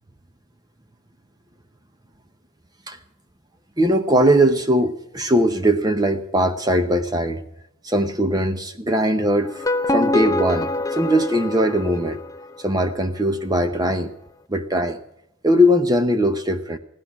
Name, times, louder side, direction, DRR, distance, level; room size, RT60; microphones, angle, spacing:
voice 1, 3.8-7.4 7.8-12.2 12.6-14.1 14.5-15.0 15.4-16.8, equal, 20° right, 9 dB, 0.8 m, -20 dB
sound 1, 9.4-12.6, left 2 dB, 15° left, 0.4 m, -25 dB
16.0 x 12.0 x 5.9 m, 0.80 s
head